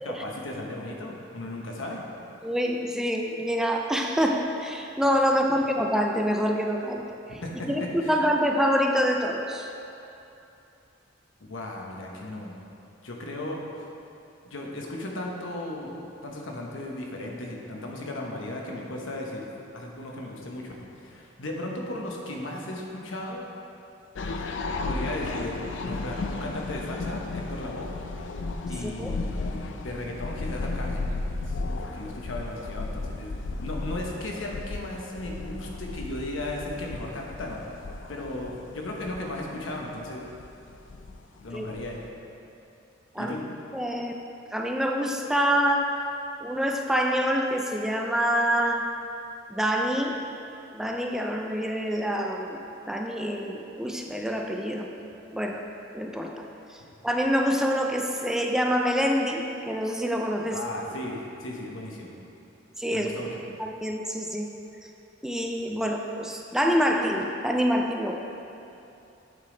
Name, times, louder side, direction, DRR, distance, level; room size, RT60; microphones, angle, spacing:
voice 1, 0.0-2.0 5.6-5.7 7.4-7.7 8.0-8.2 11.5-12.6 13.0-13.9 14.4-23.4 24.8-27.9 28.7-31.1 31.3-33.3 33.6-40.2 41.4-42.0 43.2-43.4 60.5-62.1 62.9-63.4, left 1 dB, 90° left, -1 dB, 1.0 m, -36 dB
voice 2, 2.4-7.0 7.7-9.7 28.8-29.1 41.5-41.6 43.1-43.4 43.7-44.1 44.5-45.9 46.4-48.8 49.5-50.2 50.7-52.6 52.9-54.9 55.3-55.6 55.9-56.3 57.0-60.6 62.8-63.1 63.6-64.5 65.2-68.2, equal, 5° right, 1 dB, 0.4 m, -26 dB
sound 1, 24.2-42.1, left 3 dB, 70° left, 0.5 m, -34 dB
8.1 x 5.2 x 3.8 m, 2.8 s
head